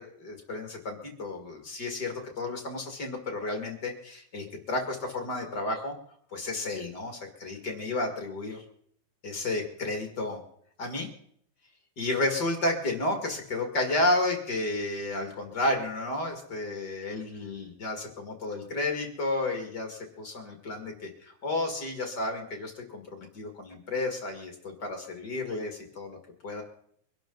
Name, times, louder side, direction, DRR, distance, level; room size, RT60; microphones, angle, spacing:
voice 1, 0.0-5.9 6.3-8.6 9.2-10.4 10.8-11.1 12.0-26.2 26.4-26.6, left 2 dB, 35° left, 2 dB, 2.2 m, -32 dB
24.5 x 11.5 x 4.0 m, 0.66 s
omnidirectional pair, 4.1 m